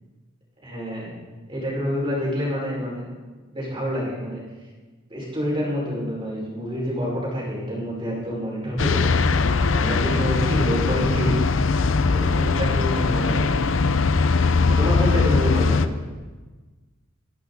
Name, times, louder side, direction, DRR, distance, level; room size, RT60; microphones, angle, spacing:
voice 1, 0.6-1.1 1.5-3.0 3.5-4.4 5.1-9.1 9.7-11.4 12.1-13.6 14.7-15.9, equal, 25° right, -4 dB, 5.1 m, -27 dB
sound 1, 8.8-15.9, left 4 dB, 80° left, 0.7 m, -20 dB
23.0 x 10.5 x 4.1 m, 1.3 s
head